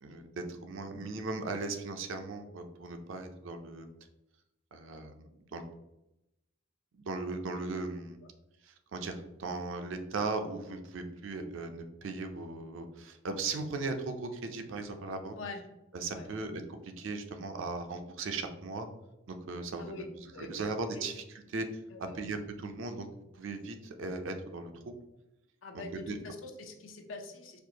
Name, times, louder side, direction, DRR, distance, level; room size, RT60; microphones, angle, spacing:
voice 1, 0.0-3.9 4.7-5.6 6.9-8.2 8.6-15.4 15.9-18.9 19.3-20.0 20.4-23.1 23.3-25.0 26.1-26.2, right 3 dB, 70° right, 6 dB, 0.5 m, -38 dB
voice 2, 19.8-20.6 20.9-21.1 21.9-22.2 25.6-27.6, left 3 dB, 70° left, 5 dB, 0.6 m, -44 dB
4.3 x 2.5 x 2.8 m, 0.91 s
head